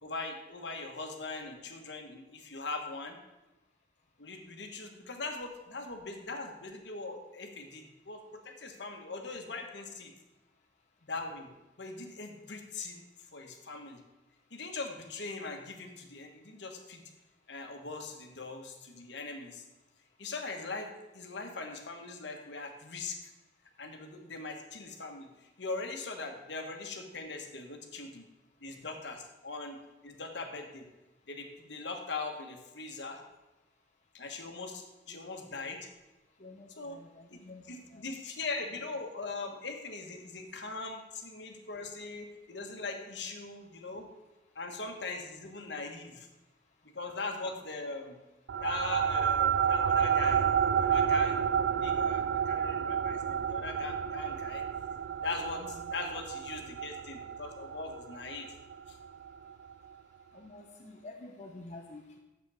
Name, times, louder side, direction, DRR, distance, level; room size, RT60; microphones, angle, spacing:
voice 1, 0.0-3.2 4.2-10.1 11.0-13.0 13.3-14.0 14.5-17.0 17.5-19.6 20.2-23.2 23.8-28.3 28.6-30.9 31.3-33.2 34.1-35.9 36.8-37.0 37.3-44.1 44.5-46.3 46.8-48.2 48.6-50.5 50.8-51.4 51.7-54.6 55.2-58.5 58.9-59.0, left 3 dB, 65° left, 3 dB, 1.4 m, -40 dB
voice 2, 36.4-38.0 55.6-55.9 60.3-62.2, left 2 dB, 40° left, 0 dB, 0.8 m, -49 dB
sound 1, 48.5-59.3, right 8 dB, 70° right, 0.3 m, -30 dB
10.0 x 7.6 x 4.9 m, 1.0 s
head